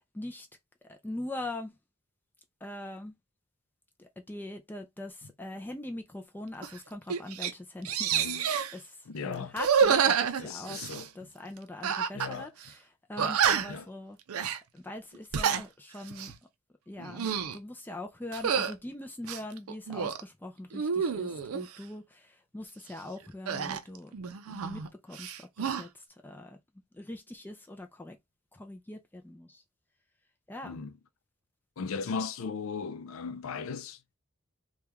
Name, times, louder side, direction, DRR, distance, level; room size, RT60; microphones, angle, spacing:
voice 1, 0.1-0.5 0.9-1.7 2.6-3.1 4.0-8.1 8.4-10.8 11.1-12.8 13.1-14.2 14.7-16.3 16.9-24.1 24.5-26.6 26.9-28.2 28.5-29.6 30.5-30.8, left 1 dB, 10° left, 0.4 m, -42 dB
sound 1, 6.6-6.8 7.1-7.5 7.8-8.7 9.5-11.1 11.8-12.3 12.6-12.7 13.2-13.8 14.3-14.6 15.1-15.6 16.1-16.3 17.0-17.6 18.3-18.7 19.2-20.2 20.7-21.7 23.5-24.9 25.1-25.8, right 7 dB, 90° right, 0.5 m, -28 dB
voice 2, 8.1-8.5 9.1-9.5 10.4-11.3 12.1-12.5 13.2-13.4 13.7-13.9 30.6-30.9 31.8-34.0, left 5 dB, 75° left, 0.4 m, -37 dB
3.0 x 2.3 x 3.4 m
head